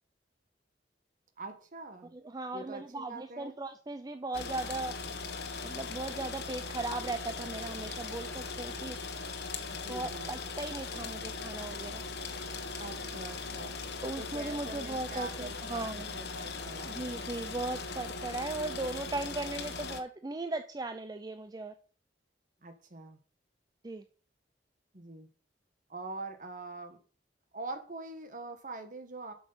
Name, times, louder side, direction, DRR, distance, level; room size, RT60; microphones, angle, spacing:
voice 1, 1.4-2.1 2.5-3.6 9.7-10.3 12.8-13.7 14.2-17.1 22.6-23.2 24.9-25.3 25.9-27.0 27.5-29.3, right 3 dB, 50° right, 1.4 m, -44 dB
voice 2, 2.1-4.9 5.6-9.0 9.9-12.0 14.0-16.1 16.9-21.7 23.8-24.0, right 2 dB, 25° right, 0.5 m, -37 dB
sound 1, 4.3-20.0, left 4 dB, 65° left, 1.1 m, -39 dB
7.6 x 6.3 x 5.7 m
head